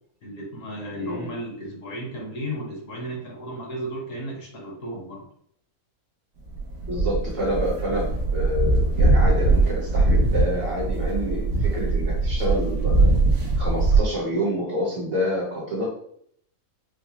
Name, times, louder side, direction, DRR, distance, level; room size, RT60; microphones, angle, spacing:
voice 1, 0.2-5.3, equal, 60° left, -1 dB, 1.2 m, -34 dB
voice 2, 1.0-1.3 6.9-13.1 13.6-15.9, equal, 45° right, -3 dB, 1.0 m, -28 dB
sound 1, 6.5-14.0, right 2 dB, 90° right, 1.3 m, -21 dB
4.8 x 2.0 x 2.8 m, 0.66 s
omnidirectional pair, 1.6 m